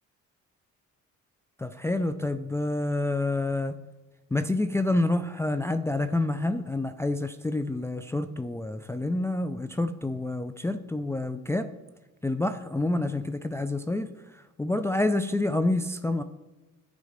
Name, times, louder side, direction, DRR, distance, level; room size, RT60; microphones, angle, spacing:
voice 1, 1.6-3.7 4.3-11.7 12.2-16.2, left 2 dB, 10° left, 8 dB, 0.4 m, -28 dB
10.5 x 3.7 x 5.1 m, 1.1 s
cardioid pair, 90°, 30 cm